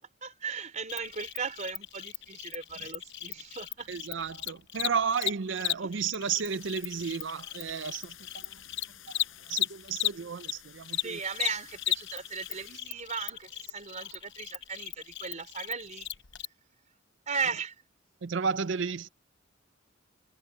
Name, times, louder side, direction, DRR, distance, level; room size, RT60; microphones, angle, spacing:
voice 1, 0.2-3.9 10.9-16.1 17.3-17.8, right 5 dB, 35° right, 3.9 m, -37 dB
Cricket, 0.9-10.5 10.8-16.4, left 12 dB, 60° left, 0.9 m, -35 dB
voice 2, 3.9-8.6 9.1-11.2 18.2-19.1, right 6 dB, 65° right, 0.6 m, -33 dB
sound 1, 6.4-12.8, left 11 dB, 80° left, 5.9 m, -53 dB
head